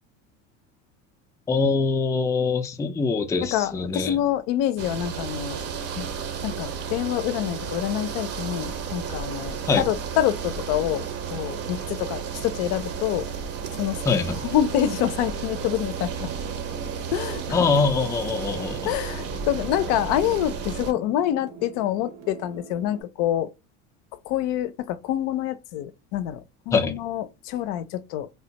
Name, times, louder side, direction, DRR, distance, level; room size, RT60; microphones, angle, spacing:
voice 1, 1.5-4.2 9.7-9.9 14.1-14.4 17.5-18.9 26.7-26.9, left 4 dB, 10° left, 0.3 m, -23 dB
voice 2, 3.4-5.6 6.0-6.1 6.4-13.3 13.7-14.0 14.4-16.3 17.1-17.6 18.8-23.5 24.3-28.3, left 11 dB, 75° left, 0.5 m, -26 dB
sound 1, 4.8-20.9, right 6 dB, 40° right, 0.6 m, -33 dB
sound 2, 15.2-23.0, right 4 dB, 90° right, 1.3 m, -44 dB
3.4 x 2.1 x 2.7 m
supercardioid pair, 100°, 36 cm